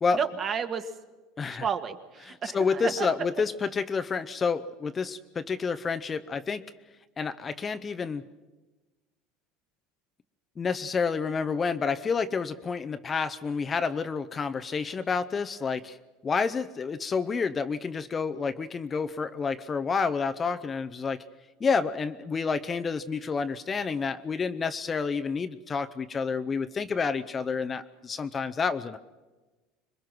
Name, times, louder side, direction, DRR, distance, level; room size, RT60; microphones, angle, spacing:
voice 1, 0.2-0.8 1.5-3.1, right 7 dB, 30° right, 8 dB, 1.7 m, -31 dB
voice 2, 1.4-1.7 2.2-6.6 7.2-8.2 10.6-16.0 16.2-21.2 21.6-29.0, left 5 dB, 20° left, 10 dB, 0.7 m, -29 dB
26.0 x 22.0 x 6.1 m, 1.2 s
supercardioid pair, 140°, 0 cm